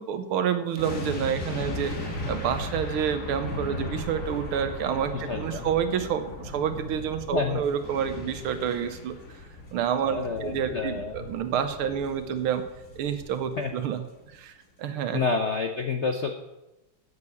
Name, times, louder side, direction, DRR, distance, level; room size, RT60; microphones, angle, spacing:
voice 1, 0.0-9.1 9.7-12.6 13.0-14.0 14.3-14.5 14.8-15.3, right 8 dB, 80° right, 9 dB, 1.7 m, -28 dB
sound 1, 0.8-13.9 14.2-14.4, left 2 dB, 40° left, 2.0 m, -37 dB
voice 2, 5.3-5.7 7.3-7.6 10.0-11.2 13.6-13.7 15.1-16.3, left 4 dB, 75° left, 5 dB, 0.6 m, -28 dB
8.8 x 6.9 x 8.3 m, 0.97 s
omnidirectional pair, 2.4 m